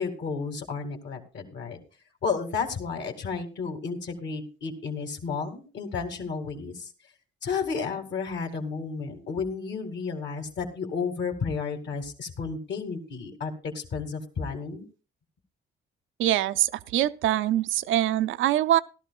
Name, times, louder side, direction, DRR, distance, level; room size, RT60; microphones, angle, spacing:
voice 1, 0.0-1.8 2.2-6.9 7.4-14.8, left 5 dB, 65° left, 2.3 m, -32 dB
voice 2, 16.2-18.8, right 13 dB, 80° right, 0.5 m, -24 dB
17.0 x 12.5 x 2.4 m
cardioid pair, 90°, 20 cm